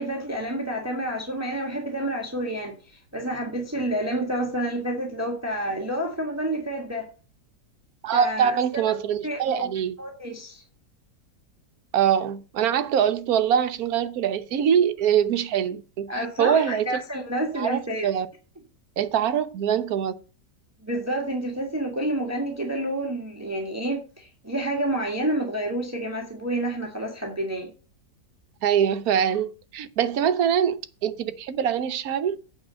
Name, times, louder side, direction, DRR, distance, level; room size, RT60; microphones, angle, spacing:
voice 1, 0.0-7.1 8.1-8.9 9.2-9.7 10.0-10.6 16.1-18.1 20.8-27.7, right 1 dB, 10° right, 1.7 m, -29 dB
voice 2, 8.0-10.0 11.9-17.0 17.5-18.3 19.0-20.1 28.6-32.4, right 8 dB, 65° right, 1.2 m, -24 dB
8.6 x 5.2 x 7.5 m
omnidirectional pair, 1.8 m